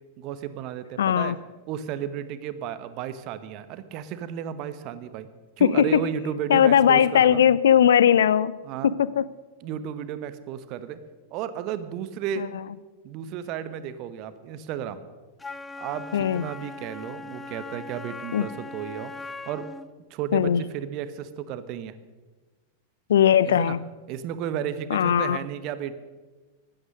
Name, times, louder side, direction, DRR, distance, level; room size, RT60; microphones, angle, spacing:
voice 1, 0.2-1.4 1.7-5.3 5.6-7.4 8.6-8.9 9.6-11.0 11.3-12.5 13.0-15.0 15.8-19.1 19.5-19.6 20.1-21.9 23.4-23.8 24.1-26.0, right 9 dB, 40° right, 13 dB, 1.1 m, -33 dB
voice 2, 1.0-1.4 5.6-6.0 6.5-8.5 8.8-9.3 12.4-12.5 16.1-16.4 18.3-18.5 20.3-20.6 23.1-23.8 24.9-25.4, left 9 dB, 65° left, 19 dB, 0.5 m, -19 dB
Wind instrument woodwind instrument, 15.4-19.9, left 3 dB, 10° left, 0.6 m, -39 dB
16.0 x 12.0 x 6.5 m, 1.3 s
figure-of-eight pair, 90°, 0 cm